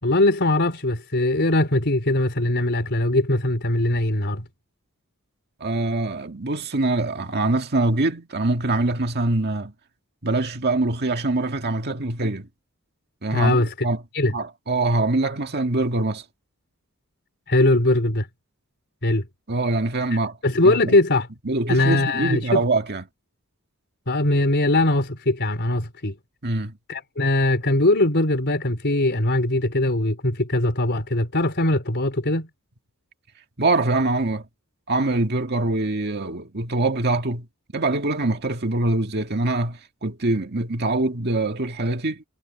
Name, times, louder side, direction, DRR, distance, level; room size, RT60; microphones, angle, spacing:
voice 1, 0.0-4.4 13.3-13.7 14.1-14.3 17.5-18.3 19.0-19.3 20.4-21.3 21.7-22.6 24.1-26.2 26.9-32.5, left 1 dB, 55° left, 4.2 m, -21 dB
voice 2, 5.6-9.7 10.2-12.5 13.2-13.6 13.8-14.0 14.3-16.2 19.5-20.4 20.6-20.9 21.5-23.0 26.4-26.8 33.6-34.5 34.9-37.5 37.7-42.2, right 2 dB, 50° right, 2.0 m, -24 dB
head